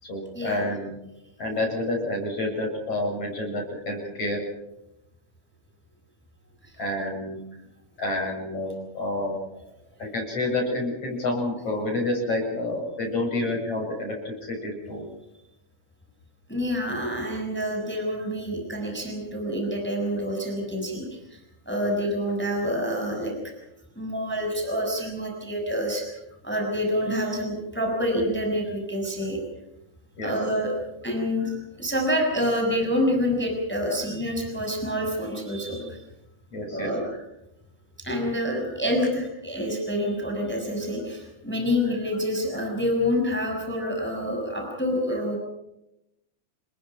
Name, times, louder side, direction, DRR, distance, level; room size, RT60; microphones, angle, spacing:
voice 1, 0.0-1.0 1.4-4.4 6.8-7.4 8.0-9.4 10.0-15.0 30.2-30.3 36.5-37.2, left 2 dB, 50° left, 1 dB, 8.3 m, -29 dB
voice 2, 16.5-21.4 21.7-23.4 24.0-26.0 26.4-29.4 30.2-30.7 31.0-31.5 31.8-36.0 36.7-37.0 38.0-45.4, equal, 5° left, 1 dB, 6.0 m, -27 dB
29.0 x 21.5 x 5.9 m, 0.88 s
omnidirectional pair, 3.6 m